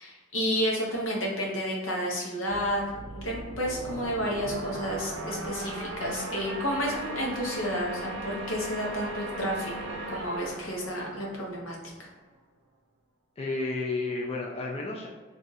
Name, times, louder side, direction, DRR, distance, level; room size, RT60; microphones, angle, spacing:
voice 1, 0.0-2.8 3.1-11.8, equal, 90° left, -2 dB, 0.9 m, -31 dB
sound 1, 2.5-12.0, right 2 dB, 65° right, 0.6 m, -38 dB
voice 2, 13.4-15.1, left 3 dB, 30° left, -1 dB, 0.4 m, -31 dB
2.6 x 2.4 x 4.0 m, 1.3 s
head